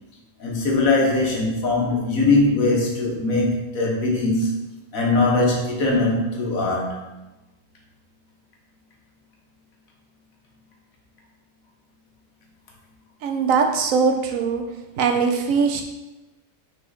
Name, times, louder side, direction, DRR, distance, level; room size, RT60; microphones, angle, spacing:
voice 1, 0.4-4.5 4.9-7.0, left 2 dB, 85° left, -1 dB, 1.6 m, -21 dB
voice 2, 13.2-14.7 15.0-15.8, right 5 dB, 80° right, 4 dB, 1.1 m, -21 dB
5.6 x 4.2 x 4.1 m, 1.0 s
omnidirectional pair, 1.4 m